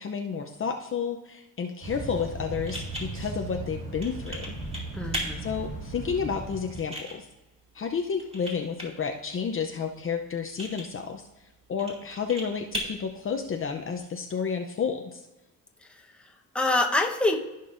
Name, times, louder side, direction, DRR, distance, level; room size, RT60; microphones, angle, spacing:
voice 1, 0.0-4.5 5.4-7.3 7.7-11.2 11.7-15.2, left 6 dB, 40° left, 3 dB, 0.7 m, -31 dB
sound 1, 1.8-6.8, right 2 dB, 60° right, 2.2 m, -37 dB
sound 2, 2.3-14.1, equal, 15° right, 2.5 m, -41 dB
voice 2, 4.9-5.5 15.8-17.4, left 2 dB, 5° left, 1 dB, 1.1 m, -27 dB
15.0 x 5.3 x 2.6 m, 1.0 s
cardioid pair, 100°, 34 cm